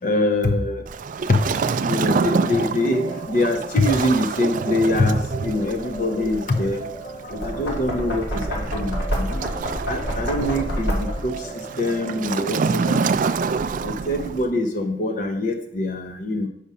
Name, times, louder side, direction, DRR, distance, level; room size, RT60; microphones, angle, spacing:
voice 1, 0.0-0.8 1.3-1.4 1.8-9.4 9.9-13.0 13.8-16.5, left 1 dB, 50° left, 6 dB, 0.8 m, -24 dB
Waves surf, 0.9-14.5, right 5 dB, 45° right, 0.3 m, -27 dB
sound 1, 1.3-13.2, right 4 dB, 25° left, 2.2 m, -38 dB
Knock, 7.2-11.4, equal, 65° left, 1.9 m, -27 dB
6.9 x 5.0 x 5.4 m, 0.70 s
head